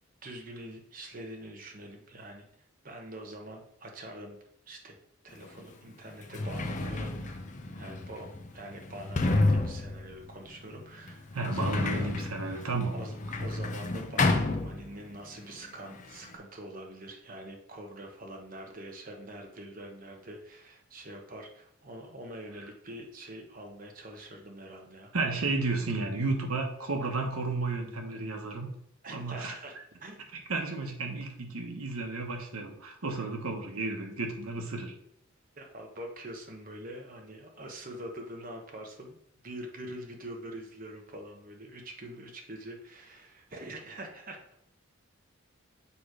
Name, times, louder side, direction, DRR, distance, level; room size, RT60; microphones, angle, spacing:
voice 1, 0.2-2.5 2.8-4.4 4.7-5.0 5.2-7.5 7.8-12.1 12.4-13.1 13.4-25.1 29.0-29.7 30.0-30.2 35.5-39.2 39.4-44.6, right 1 dB, 40° right, 2 dB, 1.0 m, -44 dB
Sliding door, 5.4-5.5 6.1-15.3 15.5-16.4, left 2 dB, 35° left, 0.5 m, -31 dB
voice 2, 11.3-12.9 25.1-28.7 29.1-29.5 30.5-34.9, right 3 dB, 85° right, 2 dB, 1.2 m, -32 dB
7.0 x 3.1 x 4.9 m, 0.71 s
head